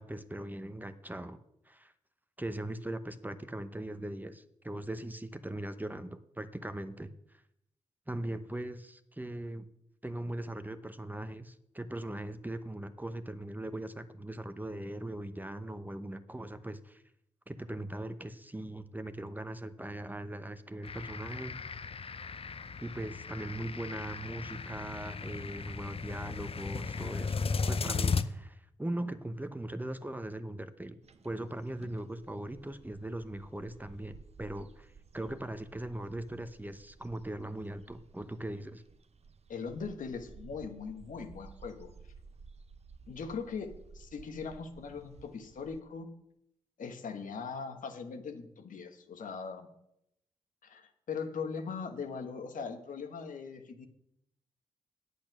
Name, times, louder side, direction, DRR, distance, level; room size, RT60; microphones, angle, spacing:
voice 1, 0.0-1.4 1.7-1.9 2.4-7.1 8.1-9.6 10.0-17.0 17.5-21.6 22.8-38.8, right 1 dB, 10° right, 10 dB, 0.9 m, -40 dB
sound 1, 20.8-28.2, left 5 dB, 45° left, 0.7 m, -36 dB
sound 2, 31.0-45.8, right 5 dB, 50° right, 0.8 m, -55 dB
voice 2, 39.5-41.9 43.1-46.1 46.8-49.7 50.6-53.9, left 5 dB, 70° left, 6 dB, 1.3 m, -40 dB
8.6 x 8.3 x 6.0 m, 0.79 s
supercardioid pair, 40°, 14 cm